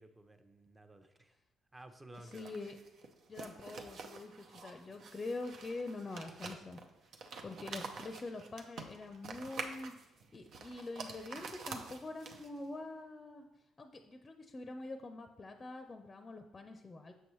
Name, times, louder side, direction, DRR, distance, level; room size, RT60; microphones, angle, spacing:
voice 1, 0.0-1.3 1.7-2.6, right 1 dB, 20° right, 7 dB, 0.8 m, -55 dB
sound 1, 2.1-12.7, right 4 dB, 60° right, 0.7 m, -48 dB
voice 2, 2.2-2.8 3.3-6.8 7.4-9.9 10.3-13.4 13.8-17.1, left 2 dB, 30° left, 6 dB, 0.6 m, -45 dB
7.1 x 5.3 x 3.1 m, 0.95 s
hypercardioid pair, 50°, 0 cm